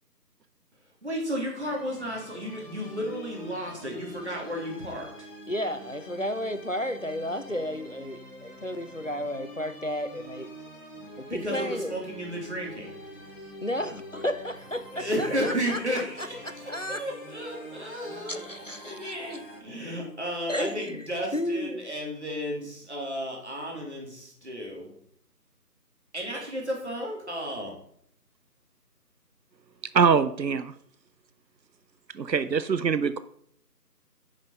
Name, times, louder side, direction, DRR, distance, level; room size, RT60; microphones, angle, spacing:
voice 1, 1.0-5.1 11.3-12.9 14.9-18.4 18.8-24.9 26.1-27.7, equal, 45° right, 3.0 m, -33 dB
sound 1, 1.5-19.6, equal, 35° left, 3.0 m, -46 dB
voice 2, 5.5-10.5 11.2-11.9 13.6-17.0 18.3-19.4 20.5-21.1 21.3-21.8, equal, 50° left, 0.6 m, -33 dB
voice 3, 29.9-30.7 32.1-33.2, right 6 dB, 85° right, 0.7 m, -23 dB
10.0 x 5.8 x 5.3 m
figure-of-eight pair, 175°, 49 cm